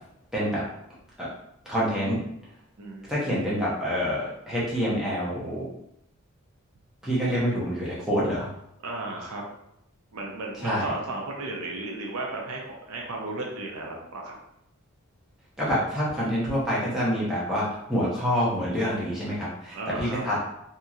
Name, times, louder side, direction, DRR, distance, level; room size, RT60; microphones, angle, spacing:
voice 1, 0.3-0.6 1.2-1.3 1.7-2.2 3.1-5.7 7.0-8.5 10.6-10.9 15.6-20.5, equal, 5° right, -8 dB, 0.8 m, -27 dB
voice 2, 8.8-9.4 10.1-14.4 19.7-20.2, right 2 dB, 85° right, 0 dB, 0.6 m, -34 dB
2.9 x 2.7 x 2.4 m, 0.78 s
head